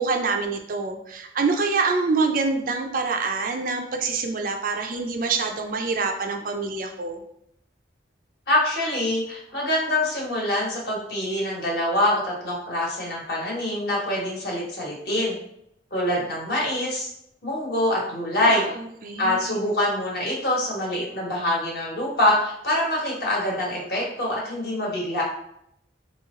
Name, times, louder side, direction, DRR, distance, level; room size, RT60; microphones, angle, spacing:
voice 1, 0.0-7.2 18.5-19.6, right 4 dB, 45° right, 4 dB, 0.4 m, -26 dB
voice 2, 8.5-15.4 15.9-17.1 17.4-18.7 19.2-25.2, left 1 dB, 55° left, -3 dB, 1.3 m, -25 dB
3.7 x 3.1 x 3.6 m, 0.74 s
head